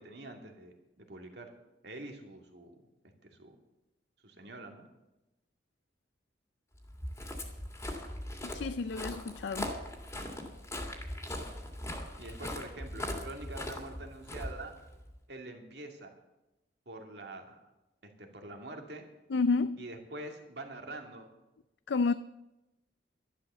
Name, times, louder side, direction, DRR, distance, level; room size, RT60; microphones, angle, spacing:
voice 1, 0.0-1.5 1.8-2.7 3.2-3.6 4.2-4.9 12.2-14.7 15.3-16.1 16.9-17.7 18.0-19.0 19.8-21.3, right 2 dB, 65° right, 2.5 m, -45 dB
Walk footsteps, 6.8-15.1, left 1 dB, 15° left, 2.2 m, -40 dB
voice 2, 8.4-9.7 19.3-19.8 21.9-22.1, left 4 dB, 75° left, 0.5 m, -30 dB
12.5 x 12.0 x 6.9 m
head